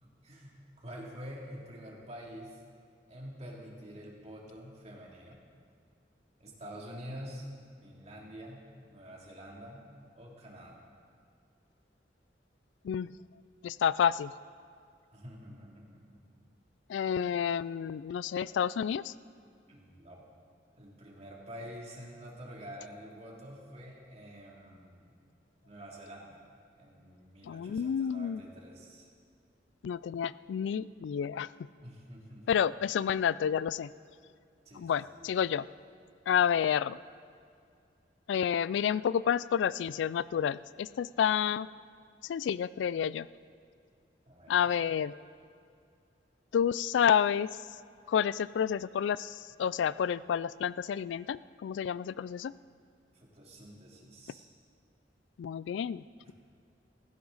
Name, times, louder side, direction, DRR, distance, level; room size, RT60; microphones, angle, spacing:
voice 1, 0.0-2.6 3.1-5.4 6.4-7.5 7.8-9.9 10.1-10.8 15.1-16.2 19.7-20.2 20.8-25.1 25.6-29.1 31.8-32.4 34.6-35.3 44.3-44.6 53.1-54.5 56.2-56.3, equal, 40° right, -3 dB, 2.8 m, -47 dB
voice 2, 13.6-14.3 16.9-19.1 27.4-28.4 29.8-31.5 32.5-33.9 34.7-35.7 36.3-37.0 38.3-41.7 42.2-43.3 44.5-45.1 46.5-47.5 48.1-52.5 55.4-56.3, left 8 dB, 85° left, 19 dB, 0.3 m, -29 dB
16.5 x 15.0 x 4.0 m, 2.4 s
head